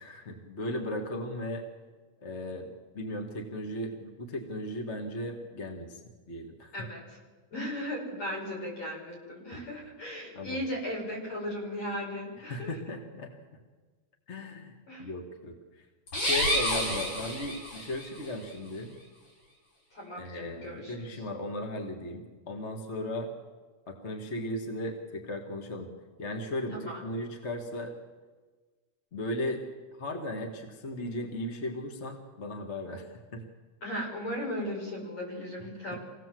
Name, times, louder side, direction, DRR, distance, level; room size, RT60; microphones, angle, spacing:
voice 1, 0.0-1.6 2.2-6.0 6.3-6.7 10.3-10.6 12.4-13.3 14.3-15.6 16.2-18.9 20.2-23.3 23.9-25.9 26.2-27.9 29.1-29.6 30.0-33.4 35.6-36.0, left 1 dB, 25° left, 2 dB, 1.9 m, -36 dB
voice 2, 6.7-7.2 7.5-12.7 14.9-15.1 19.9-21.2 26.7-27.0 33.8-36.0, equal, 60° left, -3 dB, 7.9 m, -37 dB
sound 1, 16.1-18.1, equal, 90° left, 8.8 m, -29 dB
26.0 x 17.5 x 7.7 m, 1.4 s
omnidirectional pair, 3.4 m